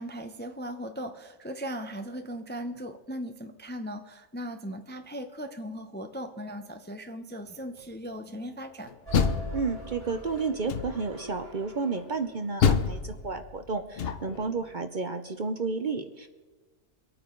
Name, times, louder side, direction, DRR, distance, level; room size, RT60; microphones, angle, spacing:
voice 1, 0.0-8.9, equal, 10° left, 6 dB, 0.5 m, -38 dB
Door, 8.9-10.1 10.7-11.2 12.6-14.5, left 6 dB, 55° left, 0.8 m, -28 dB
sound 1, 9.1-13.4, right 1 dB, 20° right, 5.7 m, -42 dB
voice 2, 9.5-16.3, right 4 dB, 45° right, 8 dB, 0.7 m, -31 dB
24.0 x 9.0 x 3.8 m, 1.3 s
omnidirectional pair, 1.3 m